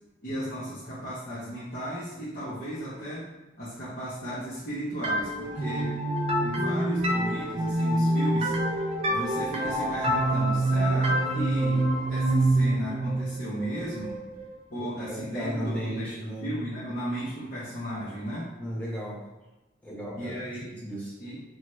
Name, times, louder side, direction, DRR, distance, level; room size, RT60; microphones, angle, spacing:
voice 1, 0.2-3.3 3.6-6.0 6.4-14.2 14.7-18.5 20.2-20.7 21.2-21.4, equal, 45° left, -11 dB, 0.8 m, -35 dB
sound 1, 5.0-14.6, right 1 dB, 30° right, 0.3 m, -26 dB
voice 2, 15.1-16.6 18.6-19.3 19.8-20.4 20.7-21.1, equal, 5° left, -6 dB, 0.7 m, -34 dB
2.8 x 2.3 x 3.0 m, 1.1 s
head